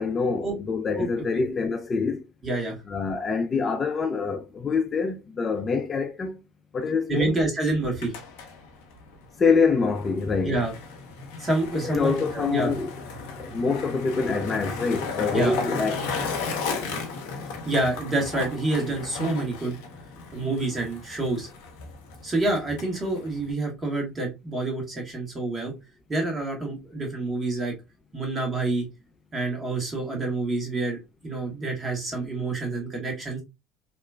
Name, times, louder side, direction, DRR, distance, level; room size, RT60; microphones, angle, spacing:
voice 1, 0.0-2.2 2.9-6.4 6.7-7.4 9.4-10.6 11.8-12.9 13.4-16.1, left 4 dB, 30° left, 0.4 m, -25 dB
voice 2, 2.4-2.8 7.1-8.1 10.4-10.7 11.4-12.7 15.3-15.6 17.6-19.8 20.3-21.5 22.2-25.7 26.1-27.7 28.1-28.9 29.3-33.4, right 2 dB, 25° right, 1.4 m, -27 dB
Skateboard, 7.8-23.5, left 4 dB, 65° left, 0.7 m, -35 dB
2.9 x 2.2 x 2.2 m
hypercardioid pair, 70°, 0 cm